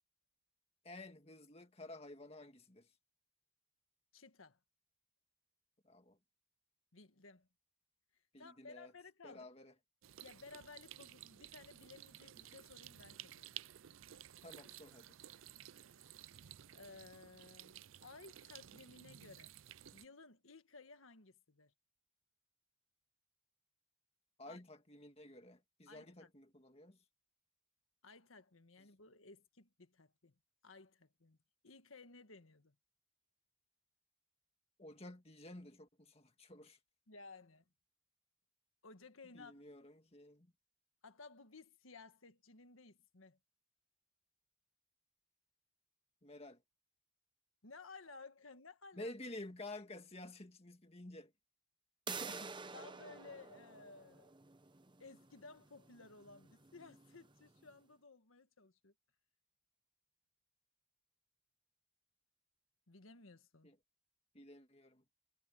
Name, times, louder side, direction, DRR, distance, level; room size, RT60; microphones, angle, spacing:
voice 1, 0.8-2.9 5.8-6.2 8.3-8.9 9.2-9.7 14.4-15.2 24.4-27.0 28.8-28.9 34.8-36.8 39.3-40.5 46.2-46.6 48.9-51.3 52.1-52.6 63.6-63.8 64.3-65.0, left 1 dB, 30° left, 2.0 m, -52 dB
voice 2, 4.1-4.6 6.9-7.5 8.4-9.5 10.2-13.6 16.7-19.5 19.9-21.7 24.5-24.6 25.9-26.3 28.0-30.3 30.6-31.4 31.6-32.7 37.1-37.6 38.8-39.6 41.0-43.4 47.6-49.1 52.7-54.3 55.0-58.9 62.9-63.7, left 3 dB, 90° left, 1.6 m, -57 dB
sound 1, 10.0-20.0, right 12 dB, 80° right, 0.5 m, -55 dB
sound 2, 52.1-57.7, right 5 dB, 25° right, 0.9 m, -50 dB
head